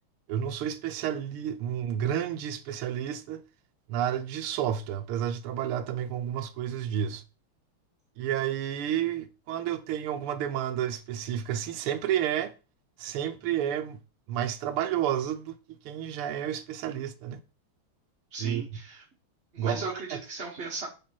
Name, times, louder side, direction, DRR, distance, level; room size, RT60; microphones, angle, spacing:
voice 1, 0.3-3.4 3.9-7.2 8.2-12.5 13.0-14.0 14.3-15.5 15.8-17.4 18.4-18.6 19.6-20.2, right 10 dB, 90° right, 1.7 m, -31 dB
voice 2, 18.3-19.0 19.5-20.9, right 4 dB, 40° right, 1.2 m, -37 dB
5.8 x 5.3 x 4.4 m
omnidirectional pair, 2.4 m